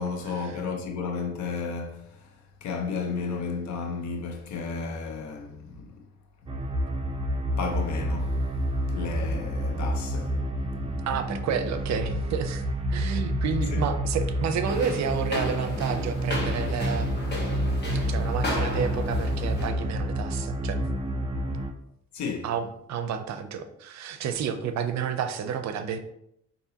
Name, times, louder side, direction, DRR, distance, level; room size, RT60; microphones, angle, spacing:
voice 1, 0.0-2.3 2.6-6.0 7.6-8.4 8.9-10.5 13.7-13.9 22.1-22.5, left 4 dB, 70° left, 0.8 m, -33 dB
sound 1, 6.5-21.7, equal, 20° right, 0.5 m, -29 dB
voice 2, 11.1-12.6 12.9-17.4 18.1-20.8 21.5-21.6 22.4-26.0, right 7 dB, 65° right, 0.5 m, -30 dB
sound 2, 14.6-19.7, left 2 dB, 35° left, 1.2 m, -34 dB
4.8 x 2.7 x 2.8 m
cardioid pair, 90°, 30 cm